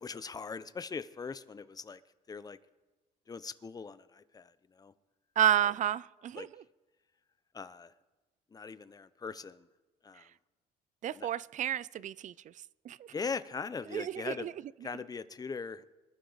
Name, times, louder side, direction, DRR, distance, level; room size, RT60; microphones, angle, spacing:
voice 1, 0.0-2.0 2.3-2.6 3.3-4.9 6.3-6.5 7.5-7.9 8.5-9.7 10.0-10.3 11.1-11.3 13.1-14.5 14.8-15.8, left 5 dB, 20° left, 0.7 m, -40 dB
voice 2, 5.4-6.5 11.0-12.3 12.9-13.1 13.9-14.5, right 11 dB, 45° right, 0.4 m, -30 dB
25.5 x 12.0 x 4.1 m
cardioid pair, 110°, 17 cm